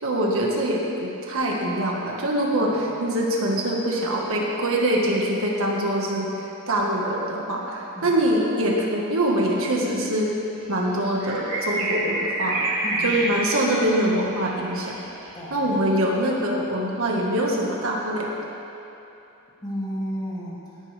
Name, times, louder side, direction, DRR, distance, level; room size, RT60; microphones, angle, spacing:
voice 1, 0.0-2.7 3.0-6.3 6.7-10.3 10.7-12.7 13.0-15.0 15.5-18.3, right 1 dB, 65° right, -2 dB, 1.8 m, -24 dB
sound 1, 10.7-15.4 16.2-16.3, right 2 dB, 85° right, 3.4 m, -28 dB
voice 2, 12.8-13.3 15.3-15.7 19.6-20.8, equal, 20° left, -7 dB, 2.6 m, -33 dB
18.0 x 11.0 x 3.6 m, 2.9 s
head